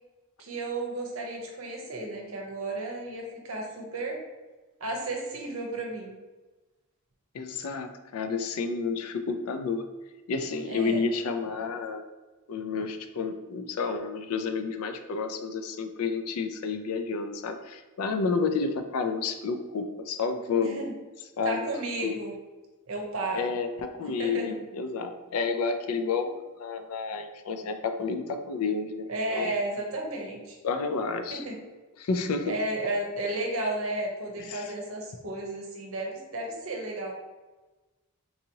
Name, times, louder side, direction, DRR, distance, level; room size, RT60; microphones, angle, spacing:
voice 1, 0.4-4.2 4.8-6.2 10.6-11.0 20.5-20.9 21.4-22.3 22.9-23.5 24.0-24.5 29.1-30.6 31.3-31.6 32.5-37.1, right 2 dB, 70° right, 1 dB, 0.8 m, -33 dB
voice 2, 7.3-9.8 10.3-12.0 12.5-20.8 21.4-21.7 22.0-22.2 23.3-29.5 30.6-31.4 32.0-32.5 34.5-34.7, left 4 dB, 80° left, 7 dB, 0.4 m, -30 dB
4.0 x 2.7 x 2.8 m, 1.2 s
head